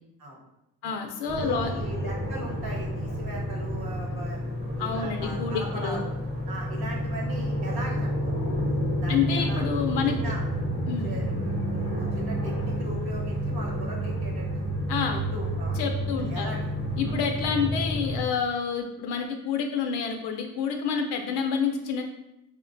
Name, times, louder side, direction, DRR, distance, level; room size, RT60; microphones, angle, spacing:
voice 1, 0.8-1.7 4.8-6.0 9.1-10.3 10.9-11.1 14.9-15.2 15.8-16.6 17.0-22.0, left 6 dB, 85° left, 4 dB, 0.5 m, -28 dB
sound 1, 1.3-18.2, equal, 15° right, 0.9 m, -30 dB
voice 2, 1.4-4.4 4.8-6.1 6.5-8.1 9.0-9.6 10.1-10.4 11.0-14.5 15.1-15.8 16.2-16.7 17.0-17.2, right 1 dB, 70° right, -1 dB, 1.0 m, -38 dB
4.4 x 2.1 x 2.5 m, 0.87 s
cardioid pair, 125°, 39 cm